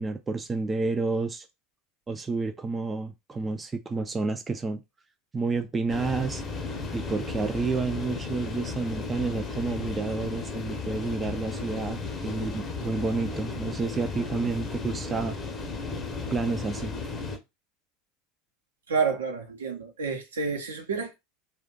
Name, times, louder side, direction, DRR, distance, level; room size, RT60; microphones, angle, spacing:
voice 1, 0.0-1.5 2.1-4.8 5.3-6.4 6.9-15.4 16.3-17.0, right 3 dB, 20° right, 0.4 m, -30 dB
sound 1, 5.9-17.4, left 4 dB, 25° left, 0.8 m, -34 dB
voice 2, 18.9-21.1, right 5 dB, 80° right, 0.8 m, -29 dB
2.5 x 2.3 x 3.7 m
figure-of-eight pair, 80°, 0 cm